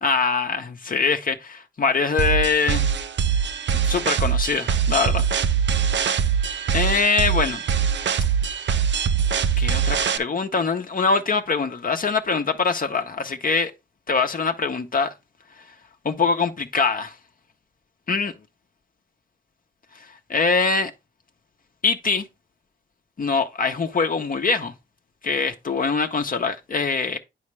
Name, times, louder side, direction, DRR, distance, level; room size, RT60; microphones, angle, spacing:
voice 1, 0.0-2.9 3.7-5.3 6.7-7.6 9.6-13.7 14.1-15.1 16.0-17.1 18.1-18.3 20.3-20.9 21.8-22.2 23.2-24.7 25.2-27.2, left 4 dB, 50° left, 0.9 m, -23 dB
sound 1, 2.2-10.2, right 7 dB, 75° right, 0.6 m, -22 dB
8.5 x 5.7 x 3.2 m
cardioid pair, 80°, 19 cm